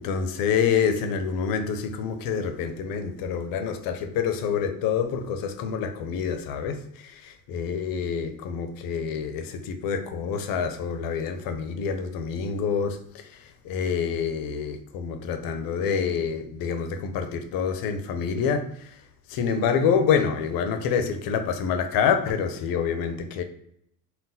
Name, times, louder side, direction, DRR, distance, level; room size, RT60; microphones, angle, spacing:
voice 1, 0.0-19.0 19.3-23.4, left 6 dB, 70° left, 0.5 m, -27 dB
3.8 x 2.2 x 2.6 m
cardioid pair, 170°, 36 cm